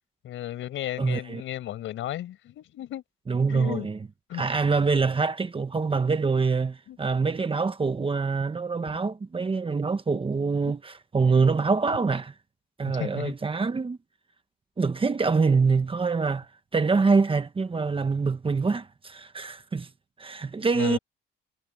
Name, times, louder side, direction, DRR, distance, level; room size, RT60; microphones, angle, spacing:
voice 1, 0.2-3.0 3.5-3.9 4.3-4.4 6.9-7.0 8.9-9.0 13.0-13.3 20.8-21.0, left 13 dB, 80° left, 5.1 m, -34 dB
voice 2, 1.0-1.4 3.3-4.1 4.3-12.3 12.8-14.0 14.8-19.9 20.2-21.0, right 4 dB, 25° right, 1.3 m, -25 dB
cardioid pair, 90°, 20 cm